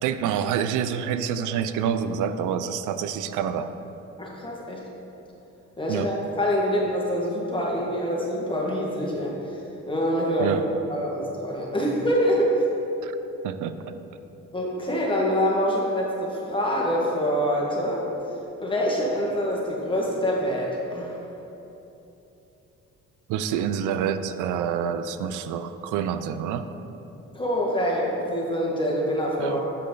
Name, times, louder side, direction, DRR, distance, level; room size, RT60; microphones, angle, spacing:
voice 1, 0.0-3.7 5.9-6.1 10.4-10.6 13.0-13.1 13.4-13.9 23.3-26.7 29.4-29.6, right 8 dB, 90° right, 11 dB, 0.5 m, -27 dB
voice 2, 4.2-4.8 5.8-9.4 9.9-10.6 10.9-12.5 14.5-18.0 18.6-21.1 27.3-29.6, equal, 15° left, -3 dB, 1.7 m, -25 dB
6.9 x 6.4 x 3.9 m, 3.0 s
cardioid pair, 90°, 30 cm